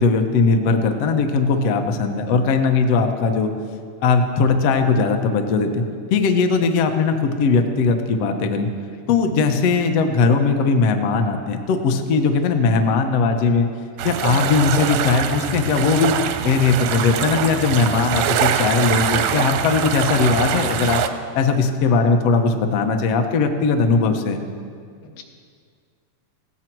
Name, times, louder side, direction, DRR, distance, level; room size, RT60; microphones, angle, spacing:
voice 1, 0.0-3.5 4.0-8.7 9.1-13.7 14.0-16.1 16.4-21.0 21.3-24.4, left 4 dB, 65° left, 5 dB, 1.7 m, -19 dB
voice 2, 1.5-1.7 8.9-9.2 12.6-12.7 25.0-25.2, left 5 dB, 85° left, 2 dB, 3.1 m, -46 dB
sound 1, 14.0-21.1, right 9 dB, 85° right, 2.3 m, -23 dB
18.5 x 16.5 x 4.6 m, 2.1 s
omnidirectional pair, 3.9 m